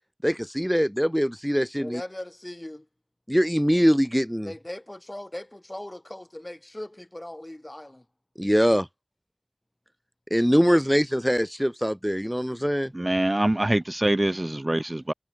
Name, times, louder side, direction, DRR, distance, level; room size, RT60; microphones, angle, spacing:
voice 1, 0.2-2.0 3.3-4.5 8.4-8.9 10.3-12.9, equal, ahead, 1.5 m, -23 dB
voice 2, 1.8-2.9 4.5-8.1, left 1 dB, 30° left, 3.8 m, -39 dB
voice 3, 12.9-15.1, right 1 dB, 40° right, 0.4 m, -24 dB
wide cardioid pair, 40°, 0 cm